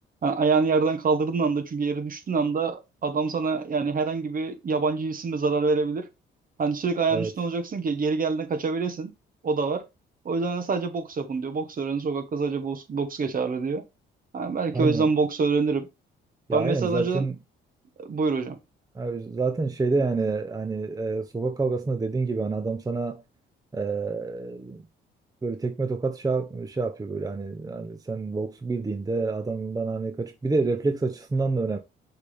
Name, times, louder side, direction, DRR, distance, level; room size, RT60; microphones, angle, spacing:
voice 1, 0.2-6.1 6.6-9.1 9.4-9.8 10.2-13.8 14.3-15.9 16.5-17.3 18.0-18.6, right 4 dB, 45° right, 1.4 m, -26 dB
voice 2, 14.7-15.1 16.5-17.4 18.9-23.2 23.7-24.9 25.4-31.8, right 3 dB, 20° right, 0.8 m, -28 dB
6.5 x 3.5 x 5.0 m
cardioid pair, 90°, 20 cm